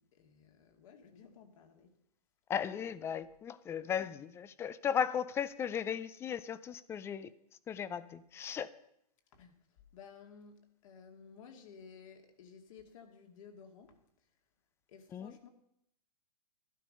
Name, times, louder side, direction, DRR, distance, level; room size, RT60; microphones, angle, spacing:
voice 1, 0.0-2.0 2.8-3.2 4.0-4.1 9.3-14.0 14.9-15.5, left 6 dB, 55° left, 4 dB, 2.3 m, -56 dB
voice 2, 2.5-7.3 7.7-8.7 15.1-15.3, left 8 dB, 10° left, 16 dB, 0.4 m, -36 dB
12.0 x 12.0 x 5.4 m, 0.75 s
hypercardioid pair, 130°, 20 cm